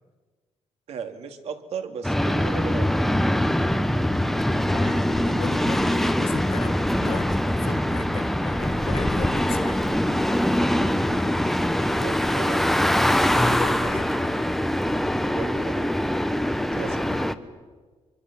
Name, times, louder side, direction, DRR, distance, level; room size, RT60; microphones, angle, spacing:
voice 1, 0.9-2.9 11.8-12.6 13.8-14.6 15.2-15.9 16.7-17.0, right 6 dB, 70° right, 7 dB, 2.3 m, -36 dB
sound 1, 2.0-17.3, left 1 dB, ahead, 0.8 m, -23 dB
voice 2, 4.7-9.9 13.2-14.4 16.8-17.3, left 7 dB, 60° left, 9 dB, 1.6 m, -37 dB
25.0 x 24.5 x 7.3 m, 1.4 s
cardioid pair, 155°, 11 cm